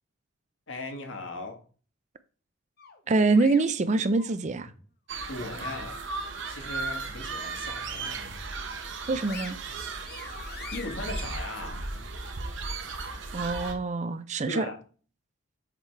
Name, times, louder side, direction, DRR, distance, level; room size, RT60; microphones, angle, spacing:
voice 1, 0.7-1.6 5.3-6.0 6.5-8.3 10.7-11.9 14.5-14.8, left 2 dB, 65° left, 1.4 m, -38 dB
sound 1, 2.8-4.8 5.2-6.7 7.1-7.2 7.7-8.5 8.9-12.3, left 5 dB, 50° left, 0.9 m, -47 dB
voice 2, 3.1-4.7 9.1-9.6 13.3-14.7, right 3 dB, 35° right, 0.4 m, -25 dB
sound 2, 5.1-13.7, right 3 dB, 60° right, 0.9 m, -36 dB
7.3 x 3.4 x 4.5 m
head